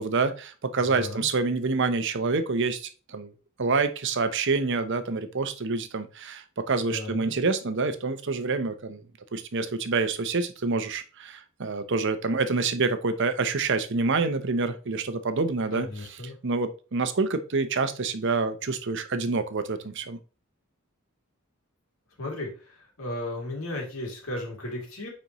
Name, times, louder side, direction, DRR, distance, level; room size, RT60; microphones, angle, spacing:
voice 1, 0.0-3.3 3.6-9.0 9.3-20.2, right 4 dB, 55° right, 10 dB, 0.7 m, -27 dB
voice 2, 0.9-1.3 6.9-7.3 15.7-16.4 22.2-22.5 23.0-25.1, left 1 dB, 75° left, -1 dB, 2.7 m, -34 dB
9.3 x 4.3 x 3.0 m, 0.35 s
head